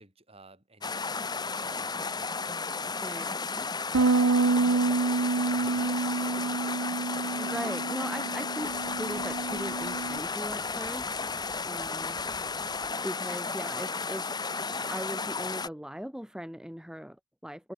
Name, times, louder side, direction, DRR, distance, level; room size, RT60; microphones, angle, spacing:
voice 1, 0.0-6.7, right 2 dB, 25° right, 5.2 m, -57 dB
sound 1, 0.8-15.7, left 4 dB, 20° left, 1.3 m, -33 dB
voice 2, 3.0-3.4 3.9-4.1 7.4-11.3 11.6-12.6 13.0-17.7, equal, 5° right, 1.8 m, -39 dB
Bass guitar, 3.9-10.2, right 3 dB, 75° right, 0.8 m, -28 dB
Telephone, 5.5-6.9 8.6-12.9, left 4 dB, 55° left, 3.0 m, -51 dB
head